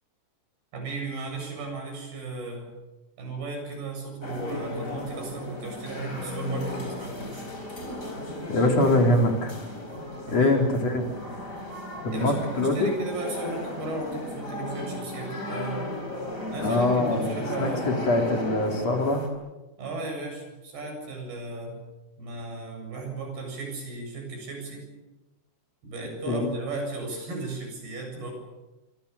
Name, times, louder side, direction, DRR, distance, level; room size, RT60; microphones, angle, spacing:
voice 1, 0.7-2.7 3.2-7.5 10.3-10.5 12.1-15.8 16.5-18.0 19.8-21.8 22.2-24.9 25.8-28.3, right 3 dB, 85° right, 2 dB, 9.7 m, -35 dB
sound 1, 4.2-19.3, left 1 dB, 20° left, 4.5 m, -35 dB
voice 2, 8.5-9.6 10.3-11.1 12.0-12.9 16.6-19.2 26.3-26.5, left 2 dB, 45° left, 3 dB, 4.0 m, -23 dB
26.5 x 25.5 x 6.8 m, 1.1 s
omnidirectional pair, 4.4 m